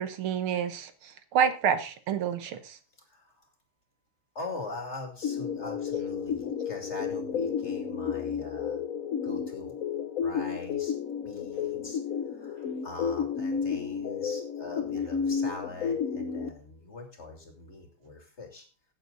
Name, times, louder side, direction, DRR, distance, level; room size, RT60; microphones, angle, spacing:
voice 1, 0.0-2.8, right 8 dB, 80° right, 2.0 m, -28 dB
voice 2, 3.1-3.5 4.3-8.8 9.2-9.7 10.2-10.9 11.2-12.0 12.3-18.7, left 2 dB, 30° left, 2.7 m, -42 dB
sound 1, 5.2-16.5, left 7 dB, 55° left, 1.0 m, -32 dB
15.5 x 8.1 x 3.9 m
omnidirectional pair, 2.4 m